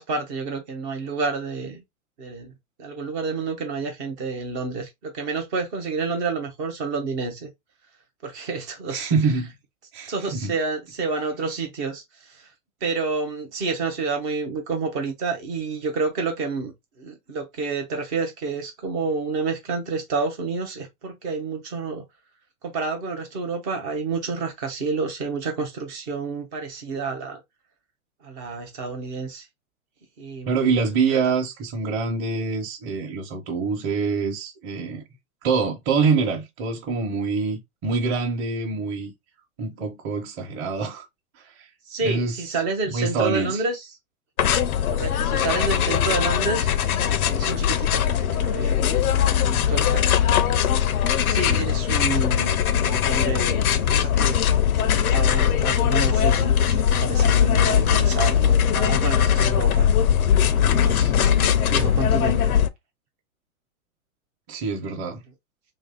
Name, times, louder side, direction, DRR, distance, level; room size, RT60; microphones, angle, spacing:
voice 1, 0.0-1.8 2.2-2.5 2.8-7.5 8.2-9.1 10.1-12.5 12.8-22.0 22.6-27.4 28.2-29.5 30.2-30.8 31.1-31.2 41.9-44.0 44.9-46.7 47.0-48.8 49.1-50.1 51.2-54.4 54.8-59.9 60.2-62.6, right 4 dB, 15° right, 0.3 m, -29 dB
voice 2, 8.9-9.5 9.9-10.5 30.5-35.0 35.4-39.1 39.6-41.0 41.4-41.7 42.0-42.4 42.9-43.6 51.5-51.7 64.5-65.2, right 4 dB, 35° right, 0.9 m, -25 dB
sound 1, 44.4-62.7, left 9 dB, 80° left, 0.6 m, -20 dB
2.8 x 2.7 x 3.7 m
hypercardioid pair, 120°, 42 cm